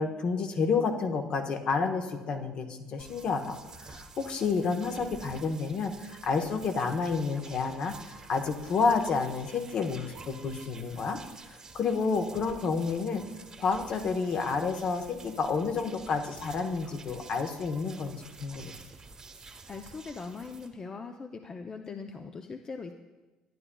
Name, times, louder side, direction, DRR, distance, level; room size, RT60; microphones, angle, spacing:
voice 1, 0.0-11.2 11.5-13.2 13.6-18.8, left 4 dB, 60° left, 5 dB, 0.9 m, -30 dB
sound 1, 3.0-20.7, right 4 dB, 35° right, 1.1 m, -49 dB
voice 2, 19.7-22.9, left 4 dB, 35° left, 5 dB, 0.5 m, -41 dB
12.0 x 9.8 x 2.3 m, 1.2 s
supercardioid pair, 75°, 2 cm